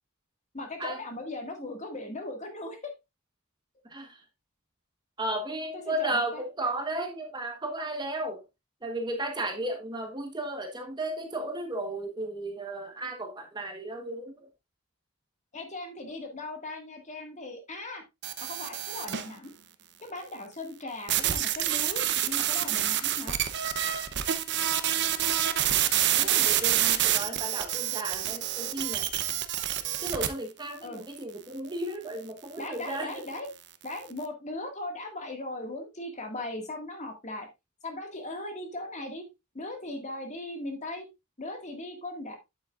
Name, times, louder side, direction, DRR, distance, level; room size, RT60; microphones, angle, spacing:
voice 1, 0.5-2.9 5.7-6.4 15.5-18.0 18.4-19.5 20.0-23.4 26.1-26.5 30.8-31.0 32.6-33.5 33.8-37.5 37.8-39.2 39.5-41.1 41.4-42.4, left 2 dB, 30° left, 1.9 m, -38 dB
voice 2, 3.9-4.2 5.2-8.4 8.8-14.4 26.2-29.1 30.0-33.2, right 1 dB, 20° right, 1.2 m, -34 dB
sound 1, 18.2-19.3 21.1-30.3, right 12 dB, 50° right, 0.7 m, -27 dB
8.5 x 8.0 x 2.4 m
head